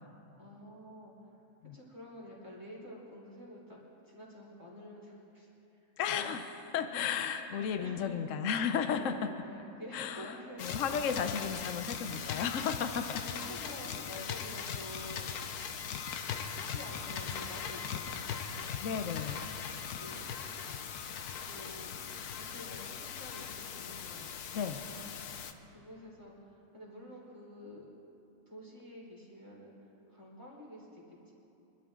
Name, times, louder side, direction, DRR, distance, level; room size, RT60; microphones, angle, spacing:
voice 1, 0.3-1.3 1.7-3.8 4.0-5.5 5.8-6.2 6.7-8.2 8.9-11.3 12.1-12.3 12.7-15.3 16.3-19.0 19.9-20.3 21.5-21.9 22.3-24.3 25.7-27.9 28.5-29.7 30.1-31.3, left 1 dB, 10° right, -5 dB, 3.6 m, -49 dB
voice 2, 6.0-9.3 9.9-10.3 10.6-13.2 18.8-19.4 24.5-24.8, left 7 dB, 60° left, 7 dB, 1.0 m, -34 dB
sound 1, 10.6-25.5, left 7 dB, 80° left, 1.3 m, -40 dB
25.5 x 12.5 x 3.7 m, 2.9 s
omnidirectional pair, 1.6 m